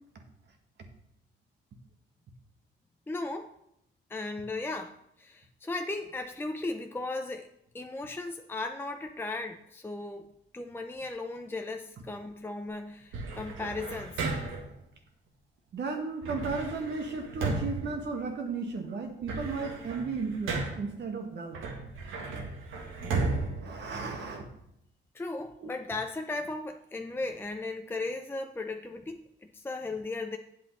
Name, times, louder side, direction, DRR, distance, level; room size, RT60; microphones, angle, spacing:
voice 1, 3.1-3.5 4.1-7.5 7.7-10.3 10.5-14.3 25.1-30.4, left 2 dB, 10° left, 4 dB, 0.6 m, -36 dB
sound 1, 13.1-14.8 16.2-18.7 19.0-21.0 21.5-24.5, right 3 dB, 80° right, 1.7 m, -35 dB
voice 2, 15.7-21.6 23.6-24.4 25.6-25.7, right 4 dB, 60° right, 3 dB, 1.7 m, -34 dB
8.8 x 7.3 x 4.2 m, 0.75 s
cardioid pair, 90°, 20 cm